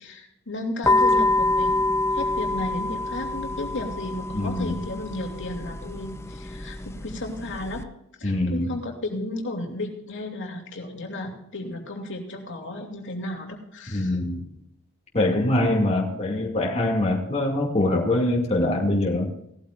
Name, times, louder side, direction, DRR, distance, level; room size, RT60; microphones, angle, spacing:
voice 1, 0.0-7.8 8.2-14.2, left 2 dB, 60° left, 1 dB, 2.8 m, -34 dB
sound 1, 0.8-7.8, left 2 dB, 10° left, 0.7 m, -26 dB
voice 2, 4.3-4.7 8.2-8.7 13.9-14.4 15.1-19.3, left 1 dB, 30° left, -2 dB, 2.3 m, -23 dB
18.5 x 14.0 x 2.5 m, 0.79 s
head